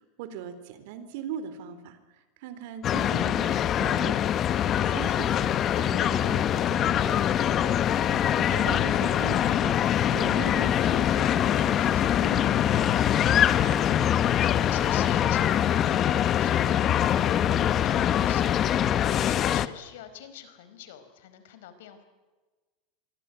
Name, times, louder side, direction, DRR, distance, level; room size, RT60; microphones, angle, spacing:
voice 1, 0.2-4.2 4.6-7.7 8.4-9.8 10.1-12.7, right 8 dB, 65° right, 12 dB, 3.9 m, -40 dB
sound 1, 2.8-19.7, left 10 dB, 30° left, 0.9 m, -24 dB
voice 2, 13.5-17.5 17.8-18.8 19.2-22.0, left 9 dB, 85° left, 10 dB, 4.6 m, -46 dB
27.0 x 22.0 x 9.3 m, 1.3 s
supercardioid pair, 165°, 0 cm